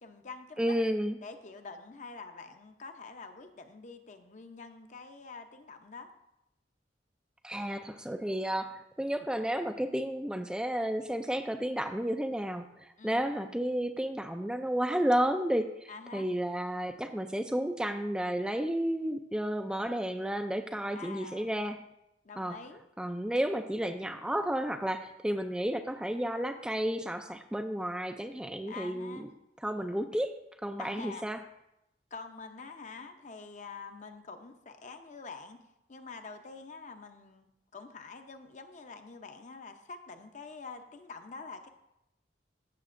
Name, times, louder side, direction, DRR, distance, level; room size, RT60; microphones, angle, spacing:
voice 1, 0.0-0.8 1.2-6.1 13.0-13.3 15.9-16.3 20.9-21.5 22.2-22.8 28.7-29.3 30.8-31.3 32.1-35.6 35.9-41.7, left 4 dB, 45° left, 6 dB, 0.7 m, -46 dB
voice 2, 0.6-1.2 7.4-21.8 22.4-22.6 23.0-29.2 29.6-30.3 30.6-31.4, right 1 dB, 5° right, 5 dB, 0.3 m, -32 dB
14.0 x 6.7 x 2.5 m, 0.83 s
head